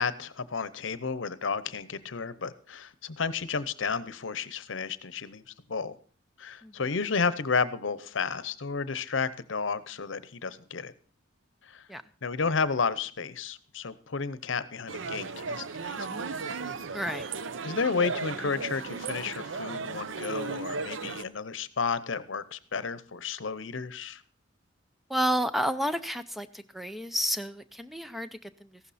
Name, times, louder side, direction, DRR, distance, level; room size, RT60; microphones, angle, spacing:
voice 1, 0.0-5.4 5.7-6.0 6.4-10.9 11.7-11.8 12.2-16.2 17.6-24.2, left 5 dB, 75° left, 16 dB, 0.8 m, -32 dB
sound 1, 14.9-21.2, right 4 dB, 75° right, 0.7 m, -35 dB
voice 2, 16.9-17.3 25.1-28.8, equal, ahead, 11 dB, 0.5 m, -31 dB
15.0 x 12.0 x 4.2 m, 0.42 s
head